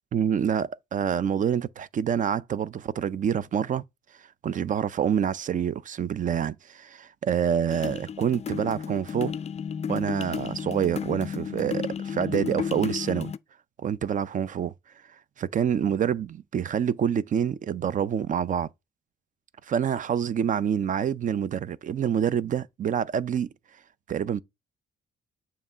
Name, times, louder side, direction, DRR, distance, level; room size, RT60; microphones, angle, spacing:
voice 1, 0.1-3.8 4.4-9.3 9.9-13.3 13.8-14.7 15.4-18.7 19.7-23.5 24.1-24.4, right 8 dB, 40° right, 0.4 m, -27 dB
sound 1, 7.7-13.4, left 7 dB, 35° left, 0.4 m, -33 dB
7.2 x 3.0 x 5.5 m
cardioid pair, 90°, 20 cm